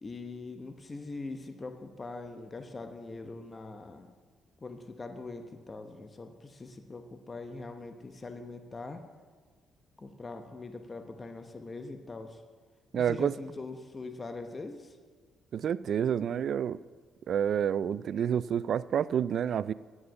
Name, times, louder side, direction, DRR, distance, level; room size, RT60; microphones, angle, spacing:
voice 1, 0.0-4.1 4.6-9.0 10.0-12.4 12.9-15.0, left 3 dB, 30° left, 6 dB, 0.9 m, -42 dB
voice 2, 12.9-13.3 15.5-16.8 17.3-19.7, right 8 dB, 60° right, 18 dB, 0.3 m, -29 dB
9.8 x 7.9 x 7.0 m, 1.5 s
cardioid pair, 90°, 0 cm